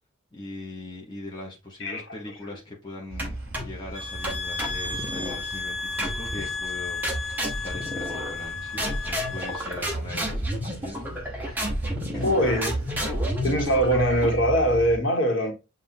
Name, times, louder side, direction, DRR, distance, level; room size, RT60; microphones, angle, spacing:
voice 1, 0.3-7.4 7.6-11.8 12.1-12.3 13.0-13.2, left 2 dB, 20° left, 1.0 m, -40 dB
sound 1, 3.1-15.0, right 2 dB, 70° right, 1.0 m, -39 dB
sound 2, 3.2-3.8 4.2-5.4 6.0-6.5 7.0-8.5 8.8-14.5, equal, 10° right, 1.0 m, -31 dB
sound 3, 3.9-9.8, left 4 dB, 25° right, 2.5 m, -33 dB
voice 2, 12.2-12.7 13.4-15.5, equal, 65° left, 1.5 m, -22 dB
7.3 x 2.7 x 2.6 m
head